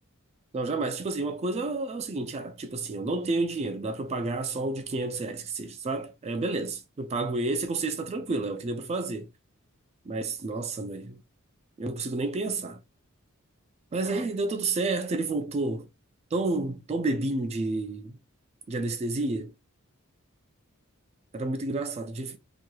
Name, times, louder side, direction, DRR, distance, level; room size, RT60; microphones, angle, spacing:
voice 1, 0.5-9.3 10.1-11.2 11.8-12.8 13.9-15.9 16.3-18.2 18.7-19.5 21.3-22.4, right 2 dB, 30° right, 0.3 m, -30 dB
3.1 x 2.8 x 2.2 m
head